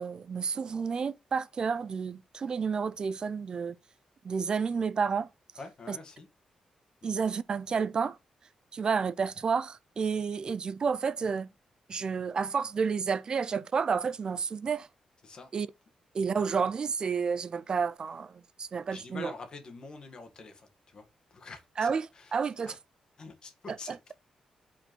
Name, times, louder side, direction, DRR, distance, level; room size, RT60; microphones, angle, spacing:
voice 1, 0.0-3.8 4.2-5.3 5.9-6.0 7.0-8.2 8.7-11.5 11.9-14.9 15.5-15.7 16.1-19.3 21.8-22.8 23.7-24.1, right 5 dB, 40° right, 0.4 m, -30 dB
voice 2, 5.6-6.3 7.0-7.1 15.2-15.5 18.9-22.3 22.6-22.8 23.2-24.1, left 3 dB, 40° left, 1.5 m, -46 dB
5.1 x 4.3 x 4.4 m
wide cardioid pair, 135°, 2 cm